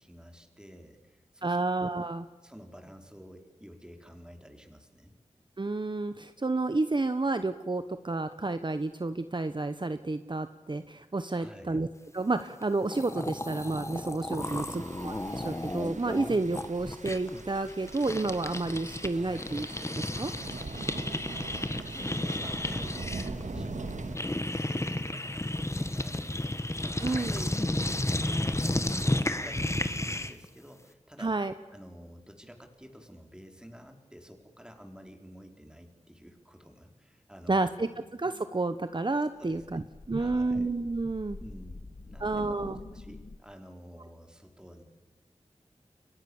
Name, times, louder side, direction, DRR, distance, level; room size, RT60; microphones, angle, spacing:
voice 1, 0.0-1.6 2.4-5.1 11.3-11.8 14.4-15.0 19.1-19.5 21.5-27.8 28.2-31.3 31.7-37.8 39.4-39.9 40.1-40.7 41.4-44.8, equal, 5° right, 4 dB, 4.7 m, -50 dB
voice 2, 1.4-2.3 5.6-11.9 12.1-14.6 15.0-19.7 20.0-20.3 27.0-27.5 31.2-31.5 37.5-37.9 38.2-41.4 42.2-42.8, right 3 dB, 40° right, 10 dB, 1.1 m, -30 dB
sound 1, 12.6-12.7 12.9-19.1 19.4-30.5, left 1 dB, 25° left, 1.7 m, -33 dB
sound 2, 14.4-24.2, right 3 dB, 85° right, 2.1 m, -42 dB
sound 3, 37.9-43.4, left 3 dB, 60° left, 1.5 m, -47 dB
30.0 x 23.0 x 7.3 m, 1.2 s
wide cardioid pair, 70°, 12 cm